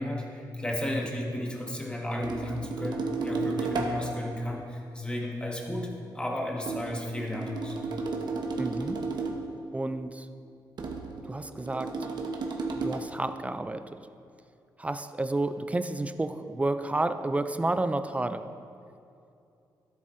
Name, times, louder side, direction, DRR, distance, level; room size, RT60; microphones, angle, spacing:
voice 1, 0.0-5.9 6.1-7.8, left 1 dB, 10° left, -1 dB, 1.4 m, -33 dB
sound 1, 2.2-4.3 6.7-9.6 10.8-13.0, right 3 dB, 60° right, 0.9 m, -33 dB
voice 2, 8.6-9.0 9.7-10.3 11.3-12.1 12.7-14.0 14.8-18.6, right 2 dB, 15° right, 10 dB, 0.3 m, -31 dB
13.0 x 7.5 x 2.6 m, 2.6 s
cardioid pair, 95°, 8 cm